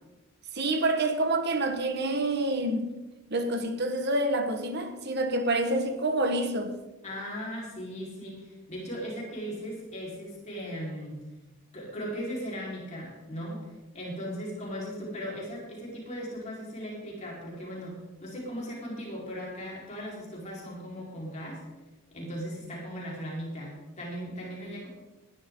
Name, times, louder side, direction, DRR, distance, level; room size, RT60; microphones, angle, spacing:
voice 1, 0.5-2.9 3.3-6.7, right 2 dB, 50° right, 1.4 m, -27 dB
voice 2, 7.0-11.2 11.7-13.6 13.9-21.6 22.1-24.9, equal, 35° left, 4.5 m, -38 dB
19.5 x 11.5 x 3.9 m
head